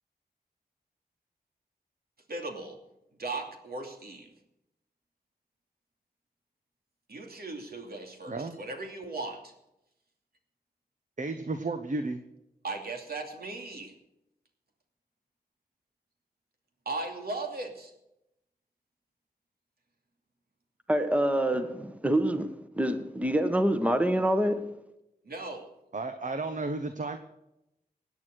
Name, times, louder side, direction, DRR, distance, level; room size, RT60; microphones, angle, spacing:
voice 1, 2.3-2.8 3.2-4.3 7.1-9.5 12.6-13.9 16.9-17.9 25.2-25.7, right 3 dB, 65° right, 2.7 m, -37 dB
voice 2, 8.3-8.6 11.2-12.2 25.9-27.2, right 3 dB, 50° right, 1.2 m, -33 dB
voice 3, 20.9-24.8, right 1 dB, 10° right, 1.4 m, -26 dB
16.5 x 9.5 x 6.5 m
cardioid pair, 45°, 17 cm